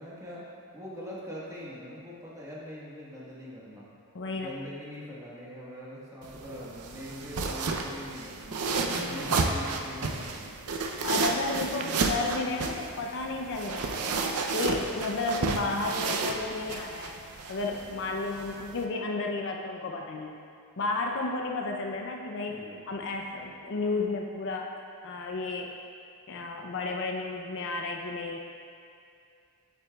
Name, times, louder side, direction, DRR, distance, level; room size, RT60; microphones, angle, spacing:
voice 1, 0.0-3.9 4.3-10.6 22.5-23.1, equal, 15° right, -7 dB, 1.4 m, -43 dB
voice 2, 4.1-4.5 8.9-9.4 11.0-14.1 14.5-17.1 17.5-20.4 20.8-24.7 25.0-25.7 26.3-28.4, left 3 dB, 55° left, 1 dB, 0.5 m, -32 dB
sound 1, 6.2-18.8, right 3 dB, 80° right, 0.6 m, -32 dB
8.7 x 8.1 x 2.3 m, 2.4 s
head